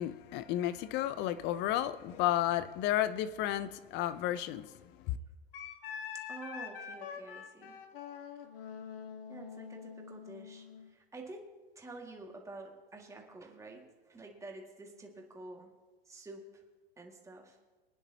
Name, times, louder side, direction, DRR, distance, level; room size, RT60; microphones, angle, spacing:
voice 1, 0.0-4.7 5.1-5.2, left 13 dB, 35° left, 14 dB, 0.7 m, -32 dB
Wind instrument woodwind instrument, 5.5-10.9, left 7 dB, 65° left, 1.8 m, -45 dB
voice 2, 6.3-7.8 9.3-15.7 16.1-16.6 17.0-17.6, right 2 dB, 10° right, 1 dB, 2.1 m, -49 dB
23.5 x 9.8 x 2.9 m, 1.3 s
hypercardioid pair, 110°, 31 cm